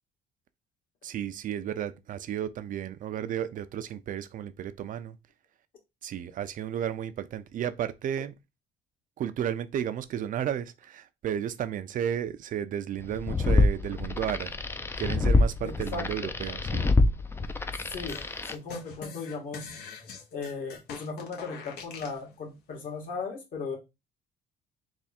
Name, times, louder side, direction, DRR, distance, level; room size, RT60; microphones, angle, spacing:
voice 1, 1.0-5.2 6.0-8.3 9.2-14.5 15.0-16.9, right 10 dB, 50° right, 0.5 m, -33 dB
sound 1, 13.0-18.6, left 2 dB, 15° left, 0.4 m, -26 dB
voice 2, 15.6-16.3 17.9-19.8 20.3-23.8, left 4 dB, 55° left, 1.7 m, -37 dB
sound 2, 18.1-22.2, left 6 dB, 80° left, 1.1 m, -43 dB
3.5 x 2.4 x 4.2 m
cardioid pair, 110°, 17 cm